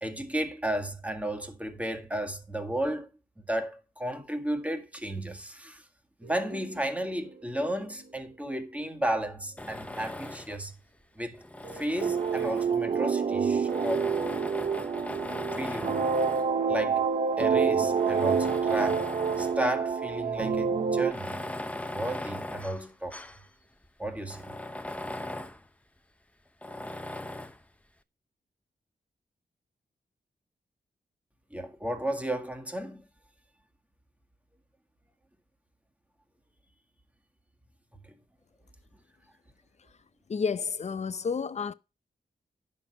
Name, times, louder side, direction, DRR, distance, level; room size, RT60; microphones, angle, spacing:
voice 1, 0.0-3.1 3.5-5.8 6.2-10.7 11.2-11.4 11.7-14.1 15.5-16.1 16.7-17.1 17.4-21.4 21.9-23.2 24.0-24.5 31.5-33.0 38.0-38.1, right 1 dB, 10° right, 1.8 m, -33 dB
sound 1, 6.2-10.1 11.6-16.1 17.5-22.7, right 3 dB, 70° right, 2.4 m, -50 dB
Tools, 9.6-10.7 11.3-13.0 13.6-16.6 17.3-17.4 17.9-19.7 20.0-20.1 21.0-23.4 23.8-23.9 24.3-25.6 26.6-27.6, left 1 dB, 10° left, 0.7 m, -39 dB
sound 2, 12.0-21.1, right 6 dB, 45° right, 0.7 m, -27 dB
voice 2, 40.3-41.7, left 5 dB, 45° left, 0.6 m, -30 dB
9.7 x 6.6 x 4.8 m
wide cardioid pair, 90°, 16 cm